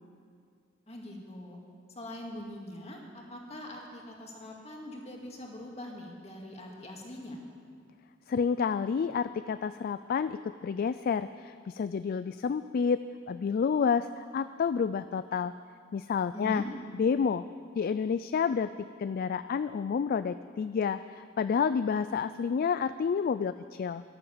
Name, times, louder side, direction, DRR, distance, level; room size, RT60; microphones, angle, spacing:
voice 1, 0.9-1.6 1.9-7.4 16.3-16.7, left 1 dB, 35° left, 0 dB, 2.2 m, -42 dB
voice 2, 8.3-13.0 13.3-15.5 15.9-16.6 17.0-17.4 17.8-18.7 19.0-24.0, left 6 dB, 50° left, 13 dB, 0.3 m, -29 dB
12.5 x 12.0 x 7.1 m, 2.2 s
head